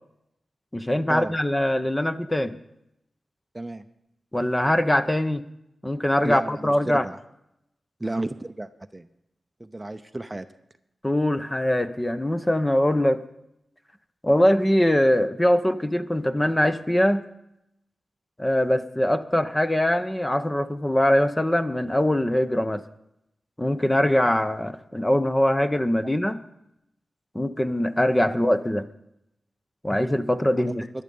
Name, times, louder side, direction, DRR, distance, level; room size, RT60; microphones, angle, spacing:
voice 1, 0.7-2.6 4.3-5.4 5.8-7.1 11.0-13.2 14.2-17.2 18.4-22.8 23.6-26.4 27.3-28.9 29.8-30.9, left 1 dB, 15° left, 11 dB, 0.8 m, -22 dB
voice 2, 6.2-7.2 8.0-9.1 9.6-10.5 30.7-30.8, right 2 dB, 20° right, 10 dB, 0.7 m, -32 dB
16.5 x 11.5 x 5.4 m, 0.82 s
wide cardioid pair, 75°, 0 cm